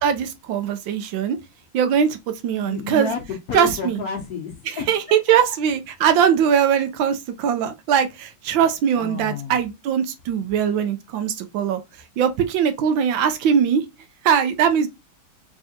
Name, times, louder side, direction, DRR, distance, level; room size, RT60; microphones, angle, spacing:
voice 1, 0.0-1.4 1.7-2.2 2.4-3.1 3.5-4.0 4.6-11.8 12.2-13.8 14.2-14.9, right 8 dB, 75° right, 1.3 m, -21 dB
voice 2, 2.6-5.2 9.0-9.6, left 4 dB, 60° left, 1.1 m, -30 dB
3.6 x 3.3 x 2.7 m
omnidirectional pair, 2.2 m